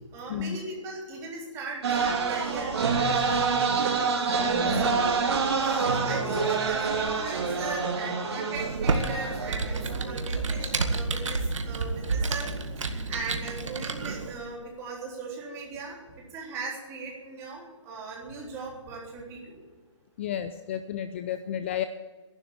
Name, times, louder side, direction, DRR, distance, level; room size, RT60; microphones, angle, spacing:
voice 1, 0.1-2.7 3.0-3.9 4.6-5.2 5.6-19.6, right 3 dB, 15° right, -2 dB, 3.6 m, -38 dB
sound 1, 1.8-10.0, right 5 dB, 55° right, 3.4 m, -27 dB
voice 2, 4.4-4.9 20.2-21.9, left 10 dB, 25° left, 11 dB, 0.4 m, -32 dB
Computer keyboard, 8.5-14.3, right 3 dB, 85° right, 2.0 m, -30 dB
13.5 x 11.5 x 8.7 m, 1.4 s
hypercardioid pair, 160°, 16 cm